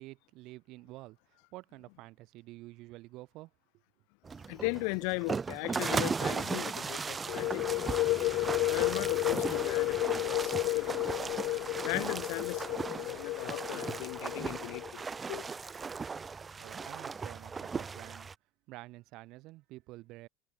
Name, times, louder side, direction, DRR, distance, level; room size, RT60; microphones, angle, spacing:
voice 1, 0.0-3.5 16.6-18.3 18.7-20.3, right 19 dB, 50° right, 6.2 m, -49 dB
sound 1, 4.2-18.3, right 5 dB, 15° right, 2.0 m, -37 dB
voice 2, 4.5-7.7 8.7-11.0 11.8-15.0 15.3-15.4, left 40 dB or more, 75° left, 1.2 m, -38 dB
sound 2, 7.3-14.9, left 19 dB, 55° left, 0.5 m, -32 dB
cardioid pair, 175°, 0 cm